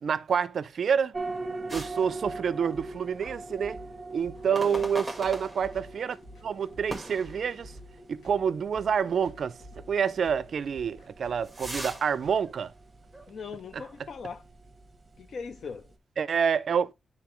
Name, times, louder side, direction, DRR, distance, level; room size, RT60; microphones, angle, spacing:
voice 1, 0.0-1.2 1.7-3.8 4.1-6.2 6.4-7.7 8.1-9.6 9.9-12.7 13.7-13.8 16.2-16.9, right 7 dB, 60° right, 0.4 m, -28 dB
sound 1, 1.1-15.9, right 2 dB, 25° right, 0.9 m, -43 dB
sound 2, 1.7-12.4, equal, 90° left, 2.1 m, -51 dB
sound 3, 1.7-2.9 3.2-3.4 4.5-6.1 6.9-8.1 8.5-8.6 9.3-9.4 10.7-13.4 13.8-14.0, right 1 dB, 5° right, 1.3 m, -41 dB
voice 2, 4.4-4.9 13.3-14.4 15.2-15.9, left 5 dB, 60° left, 0.4 m, -39 dB
10.5 x 3.6 x 3.1 m
wide cardioid pair, 145°, 0 cm